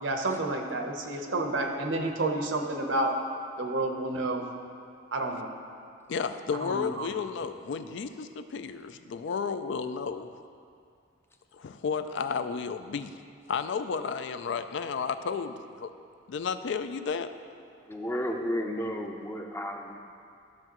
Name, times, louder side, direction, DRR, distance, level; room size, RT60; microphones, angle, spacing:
voice 1, 0.0-3.1 3.6-4.4 5.1-5.5 6.6-7.1, right 2 dB, 70° right, 3 dB, 0.9 m, -30 dB
voice 2, 6.1-10.5 11.5-13.1 13.5-15.9 16.3-17.3, left 5 dB, 65° left, 10 dB, 0.4 m, -32 dB
voice 3, 17.9-20.0, equal, 15° left, 3 dB, 0.5 m, -33 dB
12.5 x 6.5 x 3.0 m, 2.4 s
head